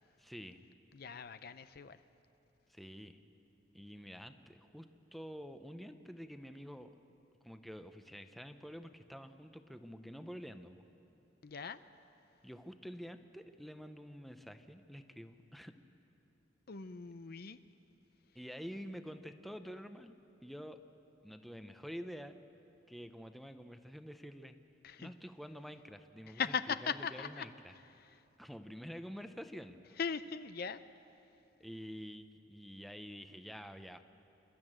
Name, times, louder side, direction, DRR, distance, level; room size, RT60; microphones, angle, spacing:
voice 1, 0.2-0.6 2.7-3.2 3.7-6.9 7.4-10.8 12.4-15.7 18.3-20.8 21.2-22.3 22.9-24.5 25.0-26.4 26.8-27.7 28.4-30.0 31.6-34.0, equal, ahead, 8 dB, 0.7 m, -48 dB
voice 2, 0.9-2.0 11.4-11.8 16.7-17.6 24.8-25.1 26.3-27.5 27.9-28.2 30.0-30.8, left 6 dB, 55° left, 12 dB, 0.6 m, -39 dB
28.0 x 12.5 x 8.8 m, 2.8 s
head